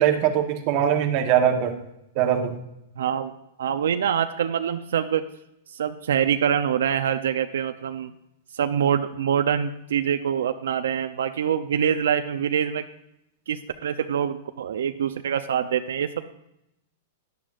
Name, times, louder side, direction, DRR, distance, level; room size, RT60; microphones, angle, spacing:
voice 1, 0.0-1.8 2.1-2.6, right 9 dB, 35° right, 5 dB, 1.2 m, -21 dB
voice 2, 3.0-3.3 3.6-5.2 5.8-8.1 8.6-12.8 13.5-16.3, right 8 dB, 85° right, 9 dB, 0.6 m, -25 dB
14.0 x 11.0 x 2.6 m, 0.83 s
supercardioid pair, 170°, 0 cm